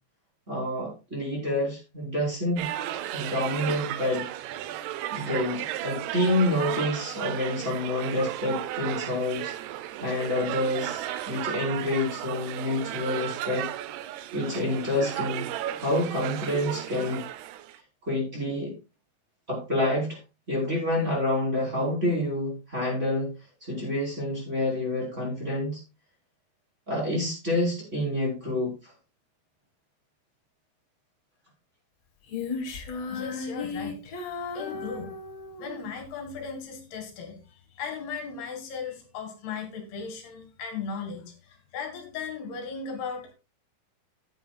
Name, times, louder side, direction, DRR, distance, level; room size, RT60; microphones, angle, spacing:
voice 1, 0.5-2.7 3.1-4.3 5.1-9.5 10.0-13.7 14.3-15.5 15.8-17.2 18.0-18.7 19.5-20.2 20.5-23.3 23.6-25.8 26.9-28.9, left 1 dB, 15° right, -4 dB, 4.6 m, -28 dB
sound 1, 2.6-17.8, right 13 dB, 85° right, 2.8 m, -34 dB
Female singing, 32.3-35.8, left 4 dB, 50° left, 2.2 m, -35 dB
voice 2, 33.1-35.1 35.6-43.3, left 5 dB, 75° left, 4 dB, 4.0 m, -37 dB
14.5 x 9.1 x 2.4 m, 0.29 s
omnidirectional pair, 4.6 m